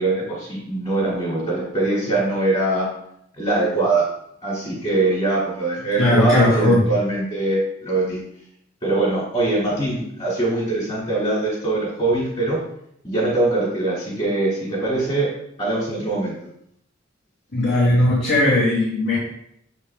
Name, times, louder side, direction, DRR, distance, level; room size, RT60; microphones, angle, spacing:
voice 1, 0.0-2.9 3.4-4.0 4.4-8.2 8.8-12.6 13.0-15.3 15.6-16.3, right 2 dB, 30° left, -6 dB, 2.2 m, -22 dB
voice 2, 6.0-6.9 17.5-19.2, left 1 dB, 75° left, -9 dB, 2.0 m, -18 dB
6.8 x 4.3 x 3.4 m, 0.73 s
head